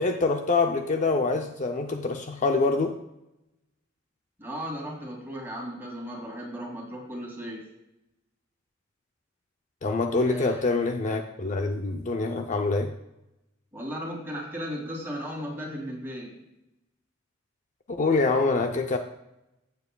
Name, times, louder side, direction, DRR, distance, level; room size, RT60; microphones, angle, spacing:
voice 1, 0.0-3.0 9.8-12.9 17.9-19.0, left 3 dB, 40° left, 5 dB, 0.5 m, -25 dB
voice 2, 4.4-7.7 10.0-10.7 13.7-16.4, equal, 10° right, -2 dB, 2.5 m, -36 dB
15.5 x 7.0 x 2.3 m, 0.88 s
head